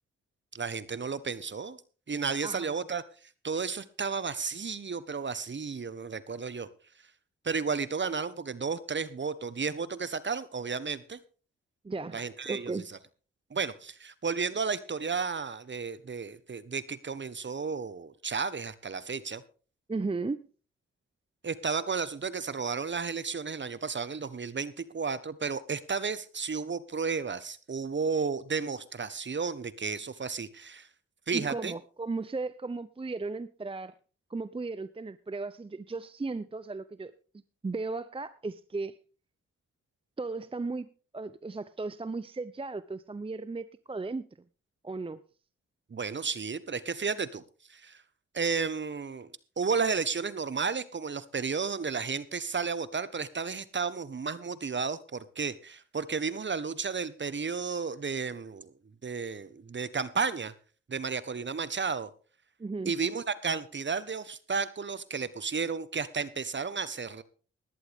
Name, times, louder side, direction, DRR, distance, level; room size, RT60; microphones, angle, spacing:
voice 1, 0.5-1.8 2.1-3.0 3.4-6.7 7.4-11.2 12.1-13.0 13.5-19.4 21.4-30.9 31.3-31.7 45.9-47.4 47.7-48.0 48.3-49.3 49.6-58.7 59.0-60.5 60.9-62.1 62.9-67.2, right 5 dB, 40° right, 16 dB, 1.2 m, -33 dB
voice 2, 11.8-12.9 19.9-20.4 31.3-34.0 34.3-37.1 37.6-39.0 40.2-40.9 41.1-44.3 44.8-45.2 62.6-62.9, right 3 dB, 20° right, 15 dB, 0.6 m, -35 dB
17.0 x 11.0 x 3.6 m, 0.38 s
supercardioid pair, 45°, 29 cm